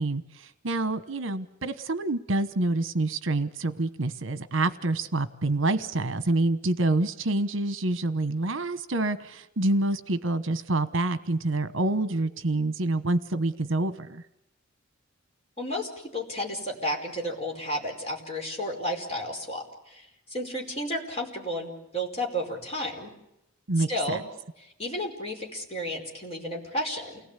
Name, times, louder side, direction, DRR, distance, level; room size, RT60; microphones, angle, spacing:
voice 1, 0.0-14.2 23.7-24.2, right 2 dB, 65° right, 12 dB, 1.1 m, -27 dB
voice 2, 15.6-23.1 23.9-24.2 24.6-27.2, equal, 30° left, 0 dB, 4.9 m, -32 dB
29.0 x 19.0 x 8.3 m, 0.88 s
head